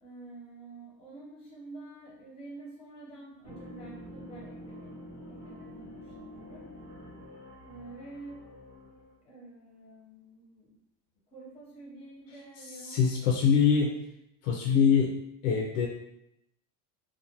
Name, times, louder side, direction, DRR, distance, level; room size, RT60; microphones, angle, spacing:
voice 1, 0.0-5.0 5.3-6.7 7.7-8.4 9.2-10.7 11.3-13.4, right 2 dB, 15° left, -5 dB, 0.8 m, -48 dB
sound 1, 3.4-9.2, equal, 30° right, 0.9 m, -47 dB
voice 2, 12.8-13.9 14.4-15.1 15.4-15.9, left 6 dB, 55° left, 0 dB, 0.5 m, -24 dB
2.4 x 2.2 x 2.8 m, 0.81 s
supercardioid pair, 140°, 43 cm